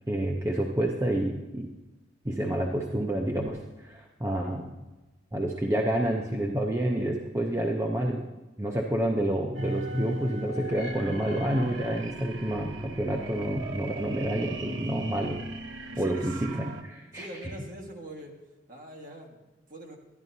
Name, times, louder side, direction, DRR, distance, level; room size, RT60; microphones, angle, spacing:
voice 1, 0.1-1.7 2.2-4.7 5.3-8.2 8.6-15.4 16.0-17.3, right 1 dB, 15° right, 1 dB, 0.6 m, -29 dB
sound 1, 9.5-16.8, right 2 dB, 80° right, 0.8 m, -38 dB
voice 2, 15.9-16.5 17.1-18.3 18.7-20.0, right 1 dB, 45° right, 0 dB, 1.5 m, -43 dB
12.0 x 11.0 x 2.7 m, 1.1 s
head